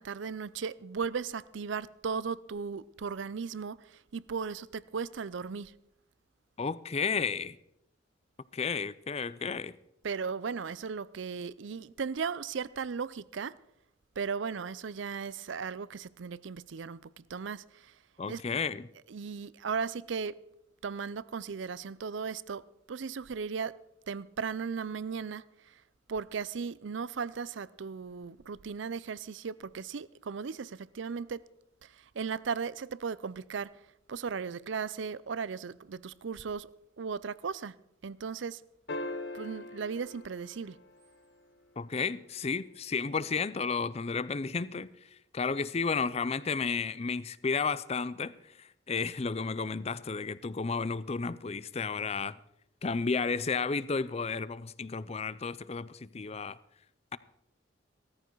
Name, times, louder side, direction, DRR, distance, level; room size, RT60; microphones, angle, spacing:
voice 1, 0.0-3.8 4.1-5.7 10.0-13.6 14.2-17.0 17.3-17.6 18.3-18.4 19.1-20.4 20.8-22.6 22.9-23.7 24.1-25.5 26.1-31.4 32.2-33.7 34.1-36.7 37.0-37.8 38.0-38.6 39.3-40.8, right 5 dB, 75° right, 0.5 m, -36 dB
voice 2, 6.6-7.6 8.5-9.8 18.2-18.9 41.8-44.9 45.3-52.4 52.8-56.6, left 5 dB, 35° left, 0.5 m, -32 dB
sound 1, 38.9-41.4 43.6-43.7, left 2 dB, 60° left, 1.2 m, -41 dB
16.5 x 14.0 x 4.6 m
head